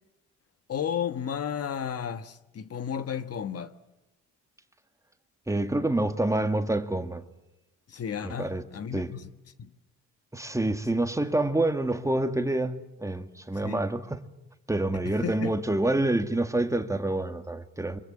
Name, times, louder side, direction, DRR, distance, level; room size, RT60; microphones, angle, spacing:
voice 1, 0.7-3.7 7.9-9.3 9.6-9.7 13.6-13.8 15.0-15.5, left 8 dB, 55° left, 1.3 m, -33 dB
voice 2, 5.5-7.2 8.2-8.6 8.9-9.1 10.3-14.3 14.7-18.0, right 2 dB, 10° right, 1.9 m, -27 dB
25.5 x 23.0 x 9.6 m
cardioid pair, 90°, 30 cm